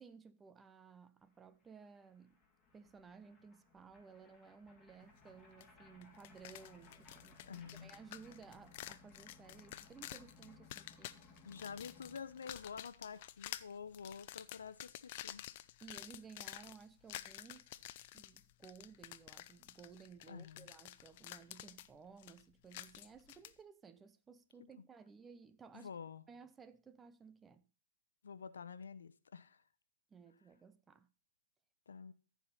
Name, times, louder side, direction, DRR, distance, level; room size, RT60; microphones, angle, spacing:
voice 1, 0.0-2.4 2.7-11.2 15.8-17.7 18.1-25.9 26.3-27.7 30.1-31.1, right 5 dB, 15° right, 0.6 m, -57 dB
sound 1, 1.3-1.4 1.6-12.5, left 4 dB, 15° left, 2.7 m, -63 dB
sound 2, 5.6-5.7 6.0-23.5, left 14 dB, 50° left, 0.6 m, -51 dB
voice 2, 7.5-7.9 11.4-15.4 20.3-20.7 24.6-24.7 25.7-26.2 28.2-29.6 31.9-32.1, left 6 dB, 85° left, 0.8 m, -49 dB
14.0 x 4.9 x 5.6 m
hypercardioid pair, 130°, 0 cm